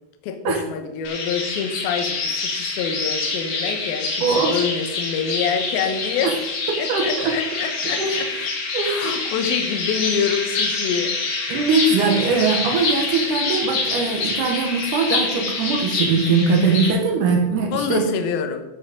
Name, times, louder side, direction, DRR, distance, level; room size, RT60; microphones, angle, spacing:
voice 1, 0.2-6.4 6.8-8.3 8.8-11.2 17.7-18.7, left 7 dB, 70° left, 7 dB, 2.4 m, -26 dB
sound 1, 1.0-16.9, left 3 dB, 55° left, 3.3 m, -26 dB
voice 2, 4.2-4.5 6.2-6.3 6.9-7.3 8.0-8.1 8.7-9.1 11.5-18.0, right 4 dB, 80° right, 1 dB, 1.8 m, -21 dB
13.0 x 6.0 x 5.1 m, 1.0 s
omnidirectional pair, 5.4 m